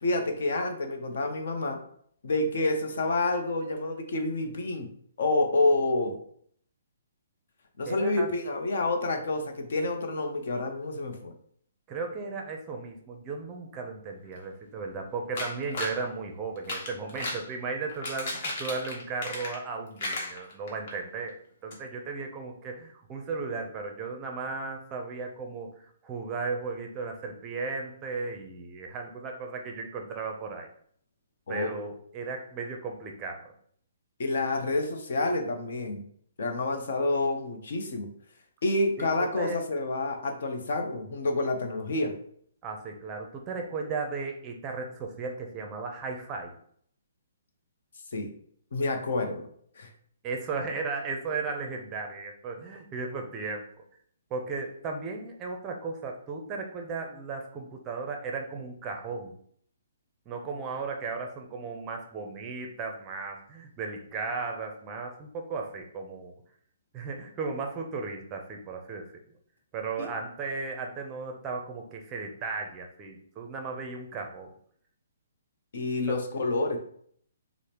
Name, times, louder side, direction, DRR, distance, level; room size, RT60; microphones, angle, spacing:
voice 1, 0.0-1.8 2.2-4.9 5.2-6.2 7.8-11.3 31.5-31.7 34.2-36.0 36.4-38.1 38.6-42.2 48.1-48.3 48.7-49.4 49.8-49.9 70.0-70.1 75.7-76.8, left 2 dB, 65° left, 5 dB, 0.7 m, -28 dB
voice 2, 7.9-8.3 11.9-21.3 21.6-25.7 26.0-30.7 31.5-33.5 39.0-39.6 42.6-46.5 50.2-53.6 54.3-59.3 60.3-66.4 66.9-69.1 69.7-74.5 76.1-76.2, right 4 dB, 20° right, 3 dB, 0.5 m, -35 dB
sound 1, 15.4-16.0 16.6-17.5 17.9-19.7 20.0-20.9 21.3-21.4 21.7-21.8, left 2 dB, 45° left, 1.0 m, -35 dB
4.8 x 2.1 x 2.9 m, 0.63 s
hypercardioid pair, 160°, 0 cm